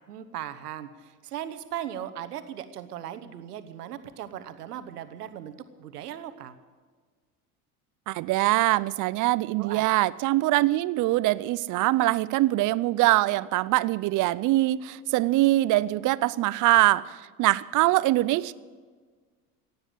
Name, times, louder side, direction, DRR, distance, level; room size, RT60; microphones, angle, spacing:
voice 1, 0.1-6.5 9.6-9.9, right 10 dB, 80° right, 11 dB, 1.1 m, -38 dB
voice 2, 8.1-18.5, right 17 dB, 45° right, 19 dB, 0.6 m, -23 dB
16.0 x 9.6 x 8.0 m, 1.5 s
hypercardioid pair, 75°, 46 cm